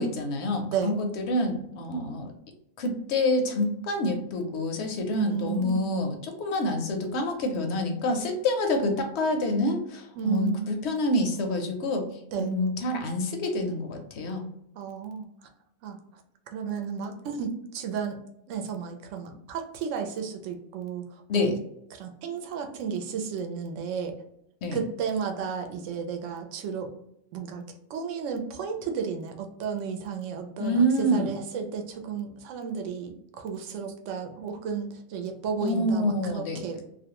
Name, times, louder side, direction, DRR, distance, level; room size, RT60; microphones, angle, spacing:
voice 1, 0.0-2.3 2.8-12.1 12.4-14.5 21.3-21.6 24.6-24.8 30.6-31.4 35.6-36.6, left 1 dB, 65° left, 4 dB, 0.7 m, -27 dB
voice 2, 5.1-5.9 10.2-10.6 12.3-12.5 14.7-15.3 15.8-16.0 16.5-18.2 18.5-21.0 21.3-21.5 21.9-24.1 24.7-26.9 27.3-27.6 27.9-36.8, right 6 dB, 70° right, 4 dB, 0.8 m, -33 dB
2.5 x 2.1 x 2.8 m, 0.77 s
omnidirectional pair, 1.4 m